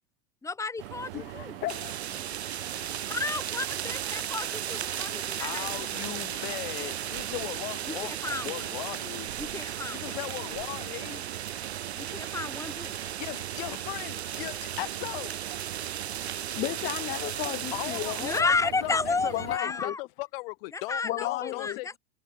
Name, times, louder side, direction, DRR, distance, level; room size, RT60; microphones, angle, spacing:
voice 1, 0.4-1.6 3.1-5.9 7.9-8.7 9.4-10.2 11.9-13.0 18.2-20.0 20.7-22.0, left 4 dB, 10° left, 1.4 m, -32 dB
sound 1, 0.8-19.6, right 20 dB, 55° right, 1.5 m, -42 dB
voice 2, 1.1-2.0 2.3-2.4 2.8-2.9 5.0-5.4 16.5-18.5 19.3-19.9 21.0-21.8, left 16 dB, 30° left, 0.7 m, -34 dB
sound 2, 1.7-18.4, right 10 dB, 75° right, 2.3 m, -36 dB
voice 3, 5.4-9.3 9.9-11.2 13.2-15.4 17.7-22.0, left 23 dB, 55° left, 2.7 m, -38 dB
figure-of-eight pair, 85°, 33 cm